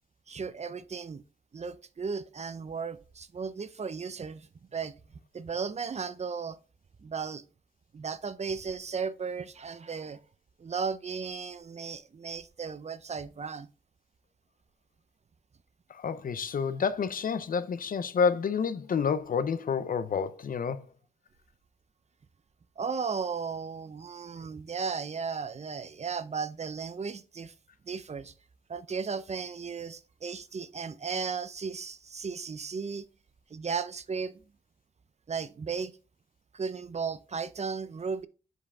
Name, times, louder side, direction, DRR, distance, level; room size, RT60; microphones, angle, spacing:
voice 1, 0.3-1.2 1.5-4.9 5.3-6.6 7.0-7.4 7.9-10.2 10.6-13.7 22.8-27.5 27.8-28.3 28.7-33.1 33.5-34.4 35.3-36.0 36.5-38.3, right 5 dB, 45° right, 0.6 m, -35 dB
voice 2, 15.9-20.9, left 6 dB, 60° left, 0.6 m, -29 dB
7.9 x 4.9 x 3.6 m
cardioid pair, 70°, 16 cm